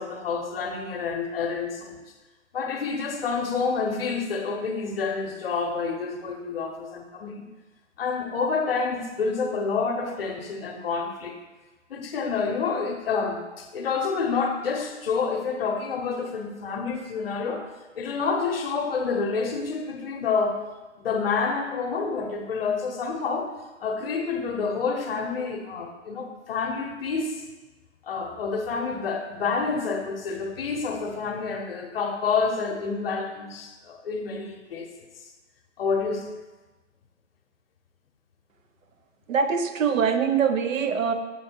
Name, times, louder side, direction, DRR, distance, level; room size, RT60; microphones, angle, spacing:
voice 1, 0.0-2.0 2.5-7.5 8.0-11.4 11.9-17.7 17.9-20.6 21.0-23.5 23.8-27.5 28.0-34.9 35.8-36.3, left 5 dB, 50° left, 4 dB, 0.8 m, -28 dB
voice 2, 39.3-41.1, right 6 dB, 85° right, 8 dB, 0.8 m, -23 dB
7.1 x 3.1 x 4.4 m, 1.2 s
hypercardioid pair, 165°, 38 cm